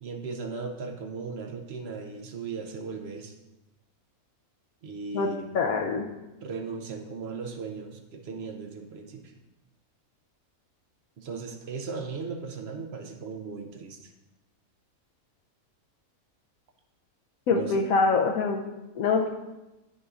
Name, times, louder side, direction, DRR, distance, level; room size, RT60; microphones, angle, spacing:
voice 1, 0.0-3.3 4.8-5.5 6.4-9.3 11.2-14.1 17.5-17.9, right 4 dB, 55° right, 4 dB, 0.8 m, -37 dB
voice 2, 5.5-6.1 17.5-18.6 19.0-19.3, left 4 dB, 80° left, 3 dB, 1.0 m, -24 dB
9.1 x 6.1 x 2.4 m, 1.0 s
omnidirectional pair, 1.5 m